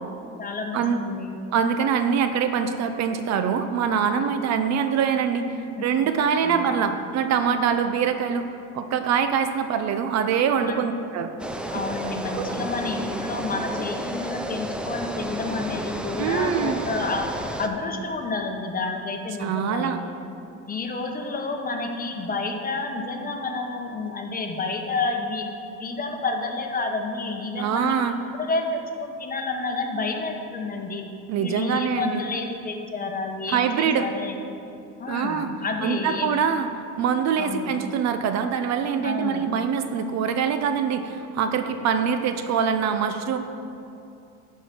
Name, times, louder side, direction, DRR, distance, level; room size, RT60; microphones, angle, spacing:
voice 1, 0.4-1.3 5.6-5.9 6.4-7.0 10.6-10.9 11.7-17.3 17.6-20.0 20.7-25.4 25.8-28.0 28.4-28.7 29.0-31.0 31.3-34.3 35.0-36.3 37.4-37.7 39.0-39.4, left 3 dB, 25° left, 3 dB, 1.0 m, -30 dB
voice 2, 1.5-5.4 5.8-8.5 8.7-11.3 12.0-12.6 16.2-16.8 19.4-20.0 27.6-28.2 31.3-32.2 33.5-34.1 35.1-35.5 35.8-36.7 37.0-43.4, right 7 dB, 55° right, 8 dB, 0.6 m, -24 dB
sound 1, 11.4-17.7, right 1 dB, 5° right, 0.4 m, -32 dB
10.5 x 4.8 x 5.9 m, 2.6 s
cardioid pair, 115°, 32 cm